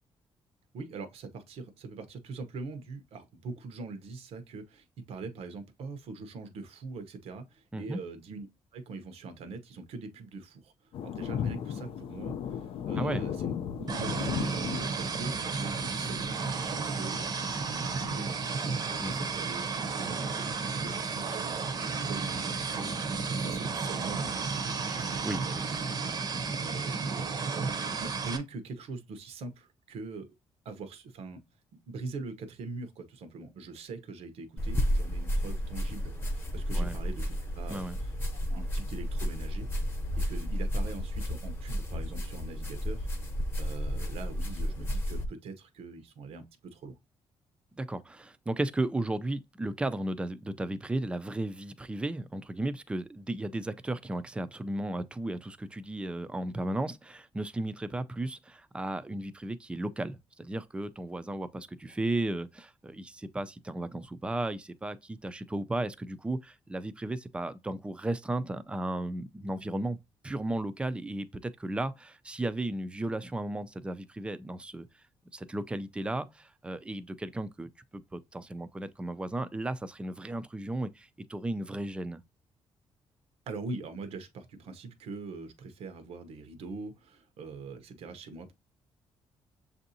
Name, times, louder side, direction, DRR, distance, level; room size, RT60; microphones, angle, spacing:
voice 1, 0.7-8.5 8.7-10.7 11.0-18.6 18.9-25.8 26.6-27.4 28.0-30.3 30.6-31.4 31.9-38.1 38.5-39.7 40.2-43.1 43.6-47.0 83.5-88.5, right 3 dB, 80° right, 0.9 m, -43 dB
sound 1, 10.9-19.2, left 8 dB, 65° left, 0.5 m, -37 dB
voice 2, 13.0-13.3 19.0-19.3 24.8-25.7 26.3-26.5 36.7-37.0 37.7-38.0 47.8-70.0 70.2-74.9 75.3-82.2, right 1 dB, 10° right, 0.4 m, -35 dB
sound 2, 13.9-28.4, right 4 dB, 40° right, 0.7 m, -33 dB
sound 3, 34.6-45.3, equal, 20° left, 0.9 m, -32 dB
6.9 x 2.6 x 2.7 m
cardioid pair, 140°, 10 cm